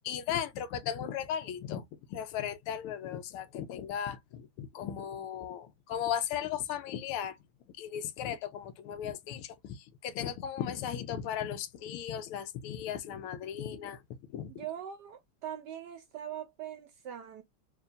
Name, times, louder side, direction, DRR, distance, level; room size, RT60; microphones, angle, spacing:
voice 1, 0.0-1.8 2.1-7.4 7.8-14.0 14.3-14.5, left 9 dB, 90° left, 1.6 m, -36 dB
voice 2, 14.5-17.4, right 10 dB, 75° right, 1.0 m, -42 dB
4.5 x 2.9 x 2.5 m
omnidirectional pair, 2.4 m